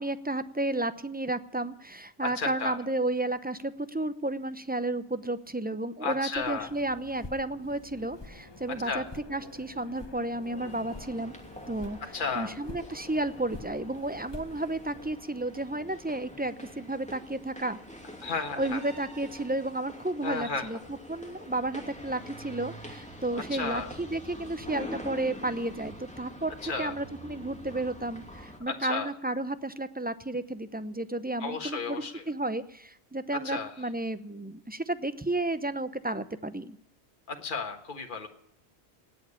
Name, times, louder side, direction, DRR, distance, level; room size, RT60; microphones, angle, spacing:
voice 1, 0.0-11.3 11.7-17.8 18.2-36.8, right 2 dB, 10° right, 12 dB, 0.6 m, -32 dB
voice 2, 2.4-2.8 6.0-6.7 8.8-9.0 12.1-12.5 18.2-18.8 20.2-20.7 23.5-23.9 26.6-26.9 28.7-29.1 31.4-32.2 33.4-33.7 37.3-38.3, left 4 dB, 50° left, 4 dB, 1.6 m, -33 dB
sound 1, 6.3-15.1, left 2 dB, 25° left, 1.2 m, -47 dB
sound 2, 10.5-28.6, equal, 5° left, 2.6 m, -45 dB
18.5 x 7.3 x 9.9 m, 0.75 s
omnidirectional pair, 1.1 m